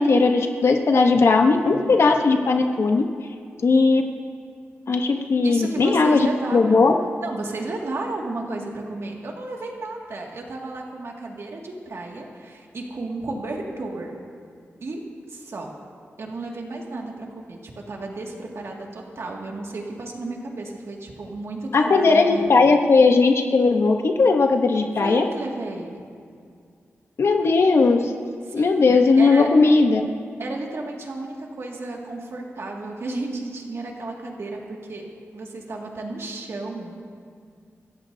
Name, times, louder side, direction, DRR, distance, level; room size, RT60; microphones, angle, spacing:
voice 1, 0.0-3.1 3.6-4.0 4.9-6.3 6.5-6.9 21.7-25.3 27.2-28.1 28.5-30.1, left 3 dB, 60° left, 4 dB, 1.0 m, -18 dB
voice 2, 5.4-6.9 7.2-14.2 14.8-15.0 15.3-15.7 16.2-22.5 25.0-26.0 28.5-29.5 30.4-35.0 35.3-37.0, right 2 dB, 65° right, 0 dB, 2.1 m, -33 dB
25.5 x 14.0 x 2.7 m, 2.2 s
wide cardioid pair, 110°, 5 cm